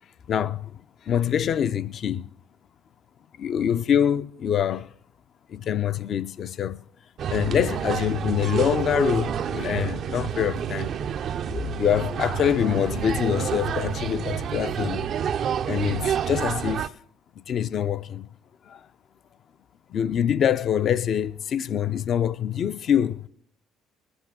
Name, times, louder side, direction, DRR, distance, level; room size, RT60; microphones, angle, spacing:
voice 1, 0.3-0.8 1.1-2.3 3.4-4.9 5.5-6.8 7.3-10.9 11.5-15.1 15.7-16.9 17.5-18.3 18.7-18.8 19.9-23.3, left 9 dB, 55° left, 0.5 m, -25 dB
sound 1, 7.2-16.9, right 8 dB, 60° right, 0.5 m, -29 dB
21.0 x 8.1 x 6.1 m
supercardioid pair, 65°, 0 cm